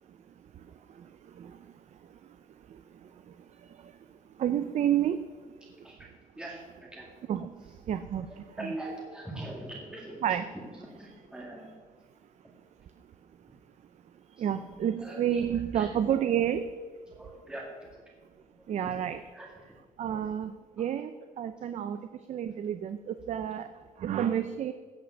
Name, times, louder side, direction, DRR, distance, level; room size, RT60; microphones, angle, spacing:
voice 1, 0.5-4.0 4.3-5.3 7.3-8.7 10.2-10.4 14.3-16.7 18.7-19.2 20.0-23.7 24.0-24.7, right 9 dB, 50° right, 10 dB, 0.5 m, -31 dB
voice 2, 5.7-7.1 7.8-7.9 8.3-11.7 14.4-14.7 15.0-15.4 15.7-15.9 17.1-18.0 18.4-18.7 19.3-19.5 20.1-20.2 20.8-20.9 24.3-24.5, right 1 dB, 5° right, -2 dB, 2.0 m, -43 dB
16.0 x 5.8 x 6.3 m, 1.5 s
cardioid pair, 115°, 15 cm